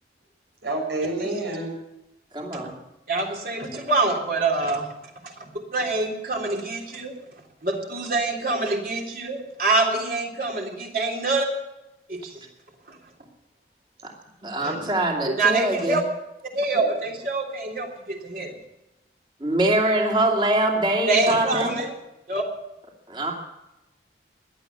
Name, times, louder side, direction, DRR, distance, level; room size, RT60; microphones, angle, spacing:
voice 1, 0.6-1.7 14.6-14.9 16.7-16.9, right 2 dB, 90° right, 2 dB, 5.6 m, -28 dB
voice 2, 2.3-2.7 14.0-14.1 14.4-16.0 19.4-21.7 23.1-23.3, right 1 dB, 30° right, 0 dB, 2.7 m, -23 dB
voice 3, 3.1-4.9 5.7-7.1 7.6-11.5 12.1-12.2 15.3-16.0 16.5-18.5 21.1-21.9 22.3-22.4, right 3 dB, 55° right, 0 dB, 3.4 m, -25 dB
17.0 x 11.5 x 7.0 m, 0.94 s
head